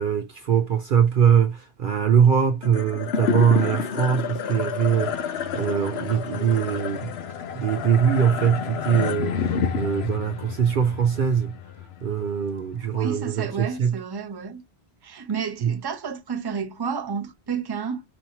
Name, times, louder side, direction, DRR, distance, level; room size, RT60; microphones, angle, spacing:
voice 1, 0.0-7.1 7.5-11.5 12.0-14.0 15.6-15.8, right 8 dB, 60° right, 0.7 m, -22 dB
sound 1, 2.6-13.1, left 7 dB, 75° left, 0.9 m, -29 dB
voice 2, 12.8-14.6 15.0-18.0, right 6 dB, 25° right, 0.7 m, -31 dB
5.3 x 2.8 x 2.8 m
omnidirectional pair, 1.1 m